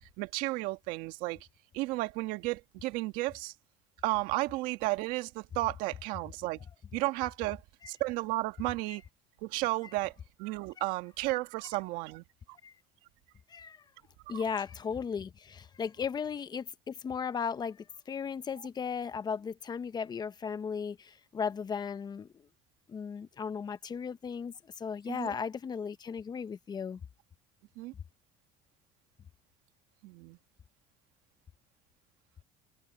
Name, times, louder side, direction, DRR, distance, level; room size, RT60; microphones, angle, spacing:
voice 1, 0.0-1.4 1.7-3.5 4.0-6.6 6.9-7.6 7.9-9.0 9.4-10.1 10.4-12.6 14.3-14.4 25.1-25.3 27.8-27.9 30.0-30.4, right 20 dB, 75° right, 1.7 m, -33 dB
voice 2, 13.5-13.8 14.3-22.3 22.9-27.0, left 6 dB, 30° left, 1.0 m, -36 dB
supercardioid pair, 110°, 14 cm